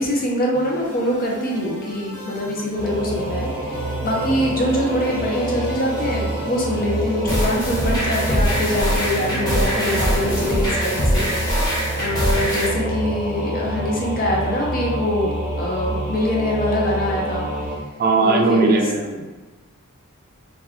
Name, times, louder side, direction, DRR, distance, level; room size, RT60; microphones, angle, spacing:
voice 1, 0.0-17.5 18.2-18.8, left 1 dB, 40° left, -2 dB, 0.6 m, -24 dB
sound 1, 0.5-10.7, right 1 dB, 85° left, 0.9 m, -37 dB
Singing / Musical instrument, 2.7-17.8, right 1 dB, 25° right, 0.9 m, -27 dB
sound 2, 7.3-12.7, equal, 20° left, 0.8 m, -23 dB
voice 2, 18.0-19.3, right 3 dB, 45° right, 3 dB, 0.3 m, -18 dB
2.4 x 2.2 x 3.5 m, 1.2 s
head